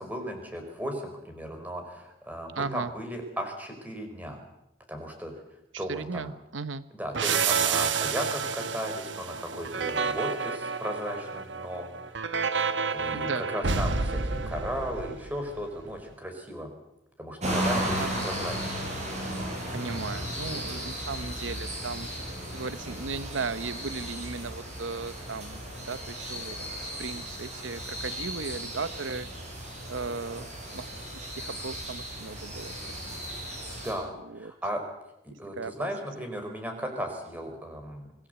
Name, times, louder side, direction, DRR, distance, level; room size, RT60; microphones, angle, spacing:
voice 1, 0.0-4.4 4.9-5.4 5.8-6.3 6.9-11.9 12.9-16.7 17.2-18.9 20.4-20.8 33.7-34.8 35.2-38.1, equal, 10° right, 4 dB, 4.8 m, -36 dB
voice 2, 2.5-2.9 5.7-6.9 13.1-13.5 18.0-18.3 19.7-22.1 22.5-26.6 26.8-29.3 29.9-32.7 33.1-33.2 34.2-34.5 35.3-35.9, right 4 dB, 90° right, 13 dB, 0.9 m, -36 dB
sound 1, 7.1-15.6, right 5 dB, 70° right, 1.3 m, -29 dB
sound 2, 17.4-33.9, equal, 35° right, 7.6 m, -35 dB
25.0 x 18.5 x 8.1 m, 0.87 s
head